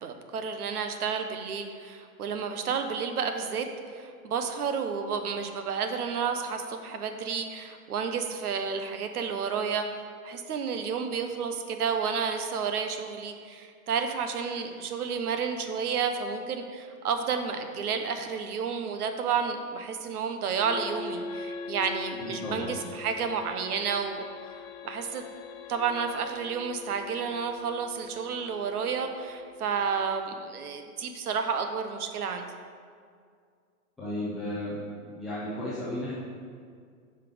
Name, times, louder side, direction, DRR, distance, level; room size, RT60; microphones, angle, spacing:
voice 1, 0.0-3.7 3.9-24.2 24.8-25.2 25.7-32.4, right 6 dB, 85° right, 6 dB, 1.1 m, -31 dB
sound 1, 20.6-30.3, left 5 dB, 65° left, 0.8 m, -42 dB
voice 2, 22.2-22.7 34.0-36.1, left 1 dB, ahead, -15 dB, 0.4 m, -34 dB
8.9 x 5.7 x 5.0 m, 2.1 s
hypercardioid pair, 165°, 44 cm